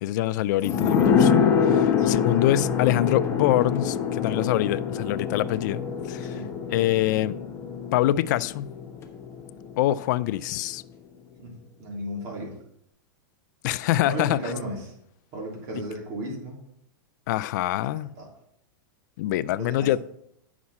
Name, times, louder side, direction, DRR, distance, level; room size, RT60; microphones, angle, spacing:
voice 1, 0.0-6.4 6.7-7.4 7.9-8.7 9.8-10.8 13.6-14.4 17.3-18.1 19.2-20.0, left 14 dB, 55° left, 0.4 m, -25 dB
sound 1, 0.6-9.9 10.2-10.3, left 7 dB, 25° left, 0.9 m, -25 dB
voice 2, 11.8-12.6 13.8-14.9 15.3-16.6 17.9-18.3 19.5-20.0, right 1 dB, 45° right, 3.3 m, -35 dB
9.6 x 6.1 x 4.2 m
supercardioid pair, 140°, 11 cm